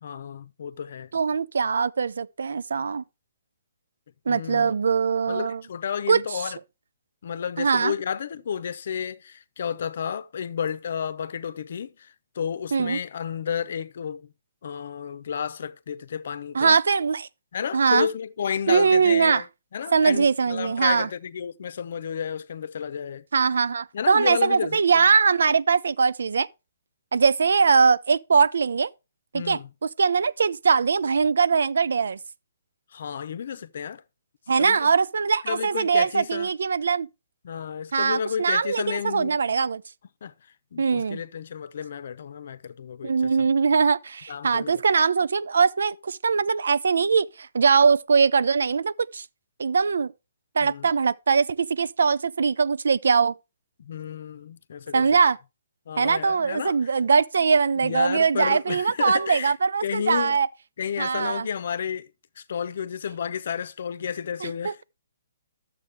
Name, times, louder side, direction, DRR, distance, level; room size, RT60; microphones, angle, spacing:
voice 1, 0.0-1.1 4.3-4.7 5.3-6.6 7.2-14.3 14.6-16.8 17.5-19.5 19.7-23.2 23.9-24.8 29.3-29.7 32.9-34.0 34.6-34.8 35.4-36.5 37.4-39.4 40.2-40.3 40.7-43.5 44.3-44.7 50.6-50.9 53.8-55.1 55.9-56.9 57.8-59.5 59.8-60.4 60.8-62.1 62.4-64.8, left 7 dB, 60° left, 0.7 m, -31 dB
voice 2, 1.1-3.0 4.3-5.6 6.1-6.2 7.6-7.9 12.7-13.0 16.5-17.3 17.7-18.1 18.7-19.4 19.9-21.1 23.3-26.5 27.1-28.9 29.3-32.2 34.5-37.1 37.9-39.8 40.8-41.2 43.0-49.3 49.6-50.1 50.5-53.3 54.9-55.4 56.0-60.5 61.0-61.5 64.4-64.8, right 5 dB, 80° right, 0.5 m, -21 dB
11.0 x 7.5 x 3.4 m
hypercardioid pair, 160°, 0 cm